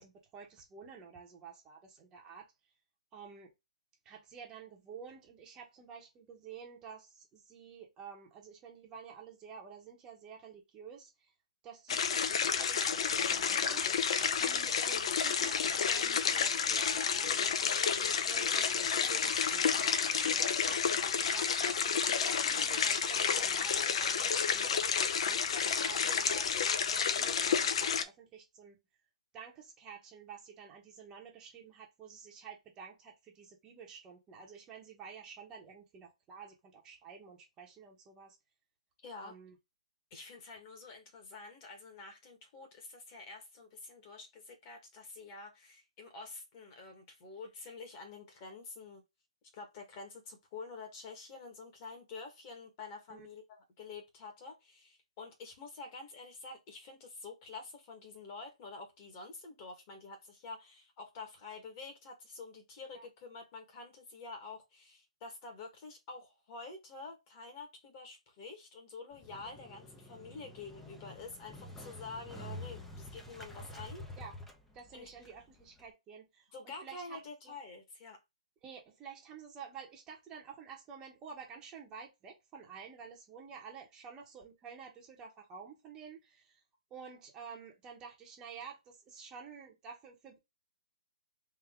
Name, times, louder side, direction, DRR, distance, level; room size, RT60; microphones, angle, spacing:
voice 1, 0.0-2.7 3.1-3.5 4.0-11.3 11.6-17.6 18.0-20.0 20.3-24.7 25.2-28.8 29.3-38.4 39.2-39.5 53.1-53.3 62.9-63.1 74.2-74.3 74.7-77.5 78.6-86.6 86.9-90.4, right 6 dB, 15° right, 0.9 m, -50 dB
sound 1, 11.9-28.0, left 6 dB, 55° left, 0.5 m, -30 dB
voice 2, 39.0-39.3 40.1-49.0 49.5-74.0 74.9-75.1 76.5-78.2, left 4 dB, 30° left, 1.4 m, -48 dB
Motorcycle, 69.1-75.9, left 1 dB, 5° left, 0.5 m, -48 dB
3.6 x 2.7 x 3.6 m
hypercardioid pair, 155°, 4 cm